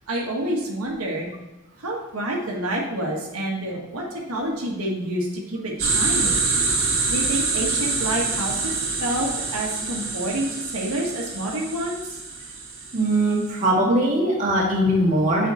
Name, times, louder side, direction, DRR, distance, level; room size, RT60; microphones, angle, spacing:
voice 1, 0.1-1.3 1.8-6.4 7.1-12.2, right 1 dB, 85° right, -2 dB, 1.5 m, -28 dB
sound 1, 5.8-13.5, right 4 dB, 60° right, 1.5 m, -26 dB
voice 2, 12.9-15.5, right 1 dB, 35° right, -4 dB, 1.8 m, -20 dB
7.5 x 5.0 x 4.3 m, 1.1 s
head